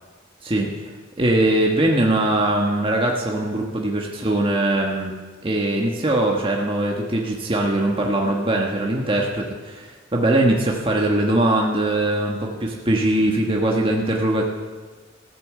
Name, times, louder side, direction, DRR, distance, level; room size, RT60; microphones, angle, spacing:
voice 1, 0.4-5.1 5.4-14.5, right 1 dB, 25° right, -1 dB, 1.5 m, -21 dB
15.5 x 8.9 x 7.6 m, 1.4 s
head